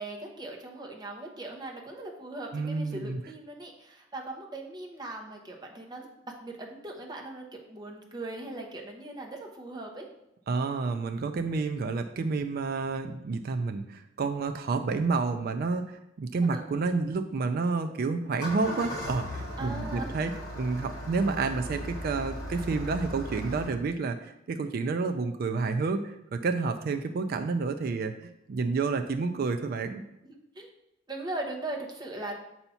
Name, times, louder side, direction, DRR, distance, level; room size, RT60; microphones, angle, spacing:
voice 1, 0.0-10.1 16.4-16.6 19.6-20.1 30.2-30.7 31.1-32.3, right 2 dB, 20° right, 0 dB, 0.9 m, -39 dB
voice 2, 2.5-3.2 10.5-30.0, right 4 dB, 50° right, 7 dB, 0.3 m, -30 dB
Engine starting, 18.2-23.7, equal, 20° left, 2.2 m, -37 dB
6.9 x 2.8 x 5.5 m, 0.84 s
head